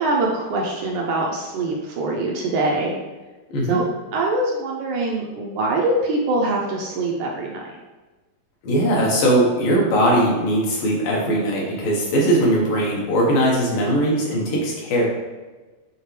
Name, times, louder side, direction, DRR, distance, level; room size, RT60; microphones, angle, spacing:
voice 1, 0.0-2.9 3.7-3.8 4.1-7.6, right 2 dB, 75° right, -1 dB, 1.9 m, -23 dB
voice 2, 8.6-15.0, right 1 dB, 75° left, -3 dB, 2.9 m, -20 dB
8.8 x 3.7 x 3.3 m, 1.2 s
omnidirectional pair, 4.0 m